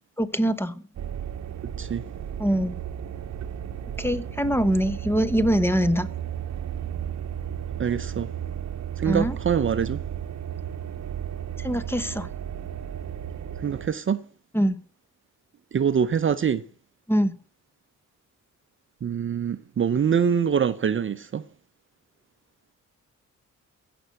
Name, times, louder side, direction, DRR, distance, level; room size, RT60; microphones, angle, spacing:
voice 1, 0.2-0.8 2.4-2.8 4.0-6.1 9.1-9.4 11.6-12.3 14.5-14.8 17.1-17.3, equal, 5° left, 1.2 m, -23 dB
sound 1, 1.0-13.9, right 9 dB, 60° right, 0.9 m, -34 dB
voice 2, 7.8-8.3 9.0-10.0 13.6-14.2 15.7-16.6 19.0-21.4, right 7 dB, 40° right, 0.7 m, -24 dB
16.0 x 7.0 x 7.8 m
cardioid pair, 105°, 32 cm